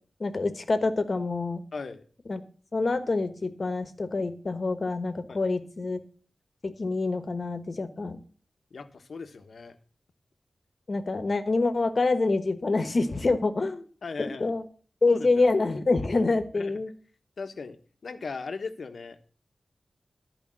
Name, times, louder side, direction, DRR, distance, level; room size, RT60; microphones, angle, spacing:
voice 1, 0.2-1.6 2.3-2.4 2.7-6.0 6.6-8.2 10.9-13.8 14.2-14.6 15.0-16.9, left 3 dB, 50° left, 10 dB, 1.3 m, -26 dB
voice 2, 1.7-2.0 5.3-5.4 8.7-9.8 14.0-14.5 15.1-15.3 16.5-16.7 17.4-17.8 18.0-19.2, left 4 dB, 75° left, 9 dB, 1.2 m, -37 dB
14.0 x 5.1 x 7.5 m, 0.42 s
wide cardioid pair, 115°, 0 cm